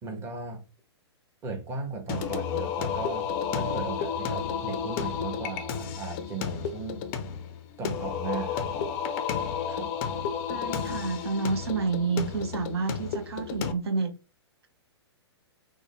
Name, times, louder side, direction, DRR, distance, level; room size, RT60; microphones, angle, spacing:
voice 1, 0.0-0.6 1.4-7.0 7.8-8.9 9.7-9.9, right 3 dB, 20° right, 0.8 m, -36 dB
Singing, 2.1-13.7, left 7 dB, 30° left, 0.4 m, -32 dB
voice 2, 10.5-14.1, right 4 dB, 65° right, 0.6 m, -29 dB
3.5 x 2.0 x 3.5 m
figure-of-eight pair, 115°, 14 cm